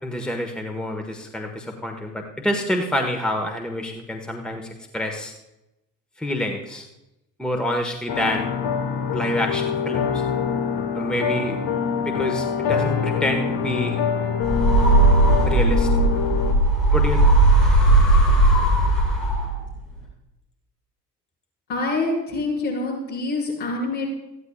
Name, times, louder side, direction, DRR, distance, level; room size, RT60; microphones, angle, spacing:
voice 1, 0.0-5.3 6.2-6.9 7.4-8.5 9.1-10.2 10.9-11.6 12.0-14.0 15.5-15.9 16.9-17.3, left 1 dB, ahead, 4 dB, 1.3 m, -27 dB
sound 1, 8.1-16.5, left 7 dB, 50° left, 1.3 m, -25 dB
sound 2, 14.4-19.7, right 2 dB, 85° left, 3.8 m, -17 dB
voice 2, 21.7-24.1, left 2 dB, 65° left, -5 dB, 5.7 m, -26 dB
19.0 x 14.0 x 2.3 m, 0.92 s
figure-of-eight pair, 55°, 48 cm